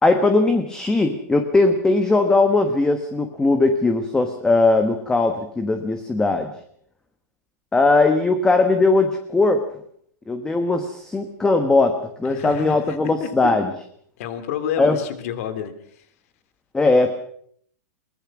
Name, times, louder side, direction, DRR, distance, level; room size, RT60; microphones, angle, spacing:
voice 1, 0.0-6.5 7.7-9.6 10.3-13.7 14.8-15.0 16.7-17.2, left 3 dB, 5° left, 7 dB, 1.2 m, -19 dB
voice 2, 12.2-13.3 14.2-16.0, left 8 dB, 55° left, 11 dB, 2.9 m, -30 dB
22.5 x 20.0 x 6.1 m, 0.64 s
supercardioid pair, 160°, 9 cm